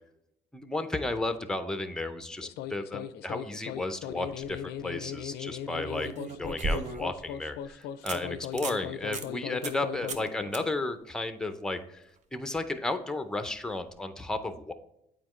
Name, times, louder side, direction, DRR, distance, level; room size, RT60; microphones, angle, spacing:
voice 1, 0.5-6.1 6.4-12.0 12.3-14.7, left 2 dB, 5° left, 9 dB, 0.6 m, -33 dB
sound 1, 2.4-10.8, left 10 dB, 75° left, 0.4 m, -39 dB
sound 2, 4.2-4.5 5.9-7.2 7.6-7.7 8.1-8.2 8.5-8.8 9.1-9.3 9.6-9.8 10.1-10.3 10.5-10.6 13.7-13.8, right 3 dB, 45° right, 0.7 m, -35 dB
8.5 x 4.4 x 3.0 m, 0.82 s
cardioid pair, 110°, 17 cm